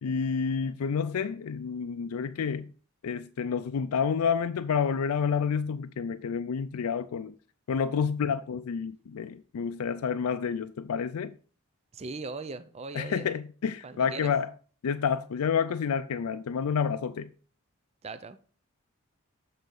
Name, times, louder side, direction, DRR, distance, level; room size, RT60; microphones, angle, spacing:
voice 1, 0.0-2.7 3.0-7.3 7.7-11.4 12.9-14.5 14.8-17.3, left 6 dB, 80° left, 0.4 m, -29 dB
voice 2, 11.9-13.3 13.8-14.3 18.0-18.4, right 3 dB, 30° right, 0.4 m, -39 dB
7.7 x 4.2 x 5.2 m
head